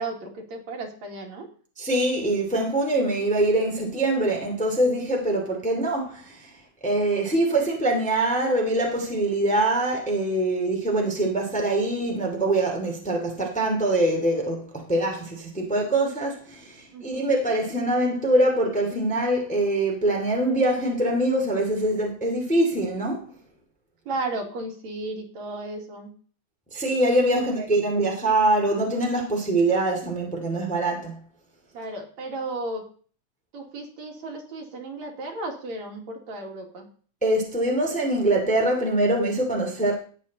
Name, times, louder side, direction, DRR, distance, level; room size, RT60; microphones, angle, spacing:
voice 1, 0.0-1.5 16.9-17.3 24.1-26.1 27.3-28.1 31.7-32.9 33.5-36.9, right 2 dB, 65° right, 3.5 m, -34 dB
voice 2, 1.8-6.4 6.8-23.2 26.7-31.1 37.2-39.9, right 1 dB, 5° left, 2.1 m, -24 dB
18.5 x 8.2 x 4.2 m
omnidirectional pair, 3.5 m